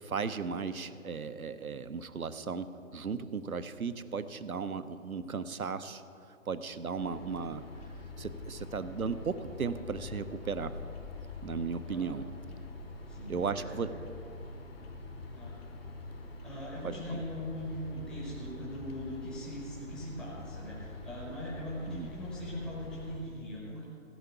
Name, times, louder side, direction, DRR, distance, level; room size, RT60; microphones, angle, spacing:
voice 1, 0.0-6.0 6.5-7.6 8.2-10.7 11.4-12.2 13.3-13.9 16.8-17.2 21.9-22.1, right 5 dB, 85° right, 12 dB, 0.8 m, -36 dB
sound 1, 7.0-23.2, left 2 dB, 45° left, 1.5 m, -45 dB
voice 2, 13.1-13.9 15.3-15.5 16.4-23.9, left 1 dB, ahead, -7 dB, 0.9 m, -41 dB
15.5 x 5.7 x 7.0 m, 2.6 s
figure-of-eight pair, 140°, 42 cm